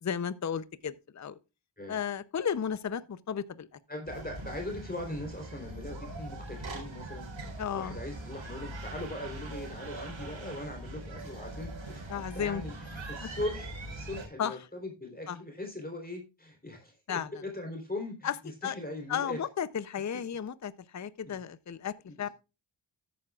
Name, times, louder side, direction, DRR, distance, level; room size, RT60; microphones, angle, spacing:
voice 1, 0.0-1.4 1.9-3.7 7.6-8.0 12.1-12.6 13.2-13.3 14.4-14.5 15.3-15.4 17.1-17.3 18.2-18.3 18.6-18.7 19.1-22.3, left 8 dB, 40° left, 0.6 m, -34 dB
voice 2, 3.9-19.4 20.1-20.2 21.2-21.4 22.1-22.3, left 1 dB, 20° left, 3.5 m, -40 dB
sound 1, 4.0-14.3, right 2 dB, 80° right, 4.1 m, -42 dB
13.5 x 9.4 x 2.4 m
wide cardioid pair, 70°, 45 cm